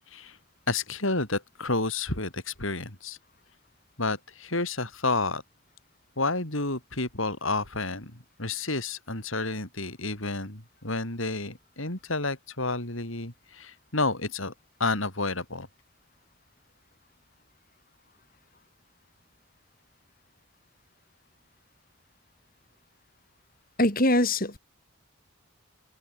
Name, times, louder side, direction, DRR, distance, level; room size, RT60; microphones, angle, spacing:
voice 1, 0.7-3.2 4.0-5.4 6.2-14.5 14.8-15.7, left 3 dB, 75° left, 5.8 m, -30 dB
voice 2, 23.8-24.6, left 1 dB, 45° left, 6.4 m, -22 dB
head